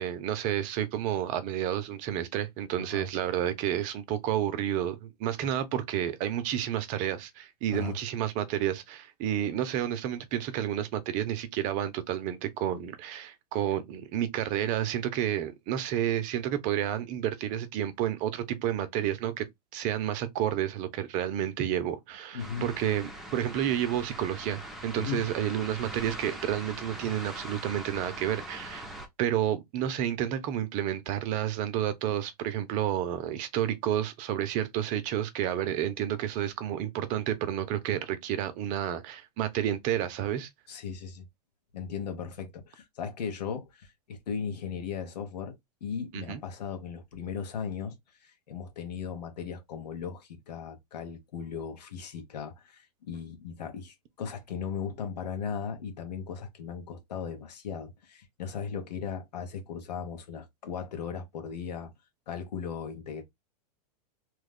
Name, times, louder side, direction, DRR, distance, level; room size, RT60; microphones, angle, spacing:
voice 1, 0.0-19.5 19.7-28.9 29.2-40.5 46.1-46.4, right 11 dB, 40° right, 0.7 m, -30 dB
voice 2, 22.3-22.7 24.9-25.2 40.7-41.2 41.7-47.9 48.2-61.9 62.3-63.2, left 6 dB, 80° left, 1.3 m, -37 dB
sound 1, 22.4-29.1, equal, ahead, 0.8 m, -42 dB
3.0 x 2.3 x 3.5 m
hypercardioid pair, 125°, 21 cm